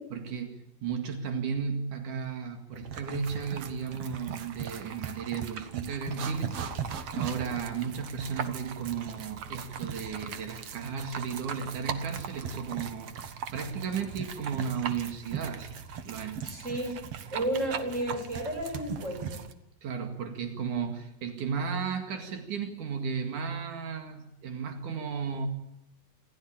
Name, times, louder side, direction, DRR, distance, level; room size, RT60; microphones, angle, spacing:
voice 1, 0.1-6.8 7.1-15.8 16.1-16.4 19.8-25.5, right 6 dB, 85° right, 6 dB, 3.6 m, -34 dB
sound 1, 2.7-19.5, right 7 dB, 60° right, 2.2 m, -38 dB
voice 2, 16.4-17.0 17.3-19.4, right 1 dB, 20° right, 3 dB, 7.0 m, -32 dB
27.0 x 14.5 x 8.8 m, 0.83 s
omnidirectional pair, 3.5 m